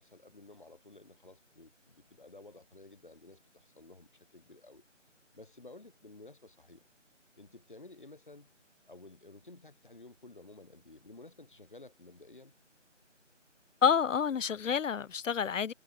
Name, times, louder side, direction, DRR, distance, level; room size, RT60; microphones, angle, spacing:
voice 1, 0.0-4.8 5.3-6.9 7.4-8.5 8.9-12.5, left 2 dB, 40° left, 3.6 m, -53 dB
voice 2, 13.8-15.7, left 7 dB, 80° left, 0.5 m, -28 dB
figure-of-eight pair, 165°, 38 cm